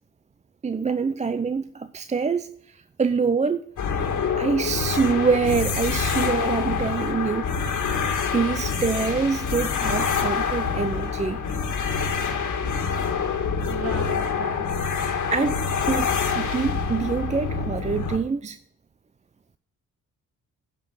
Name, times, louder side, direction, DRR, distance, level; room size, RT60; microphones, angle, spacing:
voice 1, 0.6-3.7 4.3-7.9 8.3-11.4 15.3-18.6, right 5 dB, 20° right, 0.4 m, -25 dB
sound 1, 3.8-18.2, left 5 dB, 60° left, 1.7 m, -26 dB
voice 2, 13.7-15.0, right 3 dB, 40° right, 2.0 m, -36 dB
10.0 x 5.3 x 6.3 m
cardioid pair, 80°, 33 cm